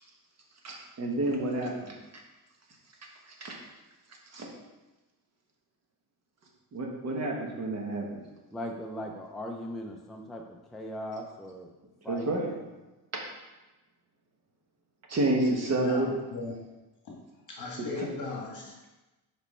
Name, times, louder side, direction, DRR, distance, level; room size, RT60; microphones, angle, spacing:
voice 1, 0.6-2.0 3.4-3.6 4.3-4.5 6.7-8.1 12.1-12.5 13.1-13.2 15.1-16.1 18.0-18.1, right 2 dB, 40° right, 0 dB, 1.2 m, -29 dB
voice 2, 7.0-7.4 8.5-11.7 12.0-12.7, equal, ahead, 1 dB, 0.4 m, -39 dB
voice 3, 15.6-16.6 17.0-17.2 17.5-18.9, left 3 dB, 45° left, -2 dB, 1.8 m, -38 dB
5.3 x 5.2 x 4.2 m, 1.1 s
cardioid pair, 145°, 40 cm